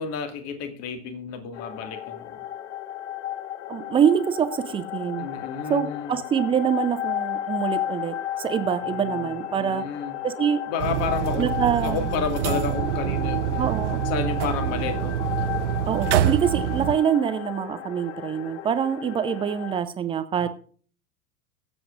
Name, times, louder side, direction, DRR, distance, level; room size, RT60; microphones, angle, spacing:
voice 1, 0.0-2.4 5.2-6.1 8.9-10.2 10.7-13.7 14.0-15.5 16.6-16.8 20.4-20.5, left 6 dB, 35° left, 7 dB, 2.0 m, -31 dB
sound 1, 1.5-19.8, left 12 dB, 50° left, 0.6 m, -33 dB
voice 2, 3.7-5.3 5.7-9.8 10.2-10.6 11.4-12.0 13.6-14.0 15.9-20.5, right 8 dB, 10° right, 11 dB, 0.6 m, -25 dB
sound 2, 10.8-17.0, right 12 dB, 50° right, 0.7 m, -26 dB
22.0 x 7.8 x 2.5 m, 0.43 s
figure-of-eight pair, 95°, 45 cm